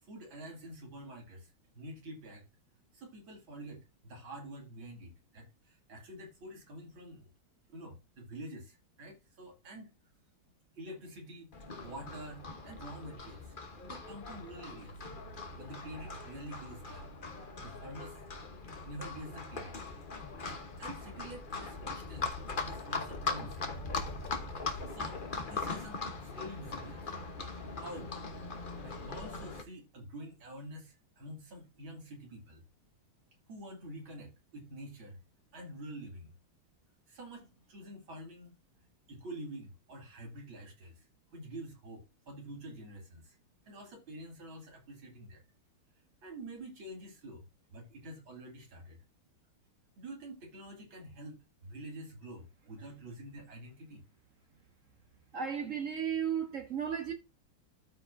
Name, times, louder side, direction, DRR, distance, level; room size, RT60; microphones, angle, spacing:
voice 1, 0.0-2.4 2.9-7.3 7.7-9.9 10.8-13.6 13.8-15.0 15.5-17.1 17.6-18.2 18.8-19.7 20.8-23.6 24.8-27.1 27.8-28.2 28.8-32.6 33.5-35.2 35.5-36.3 37.1-38.6 39.1-41.0 41.3-43.4 43.7-45.4 46.2-47.4 47.7-49.0 50.0-54.0, right 1 dB, 70° right, 3.4 m, -47 dB
Livestock farm animals working animals, 11.5-29.6, left 3 dB, 35° left, 0.9 m, -40 dB
voice 2, 55.3-57.1, right 8 dB, 45° right, 1.3 m, -34 dB
13.0 x 4.9 x 2.6 m
omnidirectional pair, 2.3 m